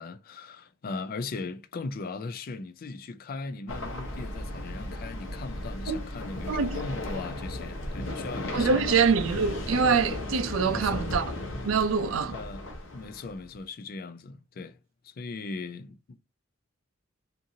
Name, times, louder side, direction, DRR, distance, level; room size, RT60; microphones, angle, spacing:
voice 1, 0.0-9.0 10.7-11.1 12.3-14.8 15.0-16.2, left 3 dB, 45° left, 0.4 m, -38 dB
sound 1, 3.7-13.6, left 1 dB, 75° left, 0.8 m, -35 dB
voice 2, 6.5-6.8 8.5-11.3 11.6-12.4, right 5 dB, 80° right, 0.4 m, -25 dB
2.6 x 2.6 x 2.7 m
head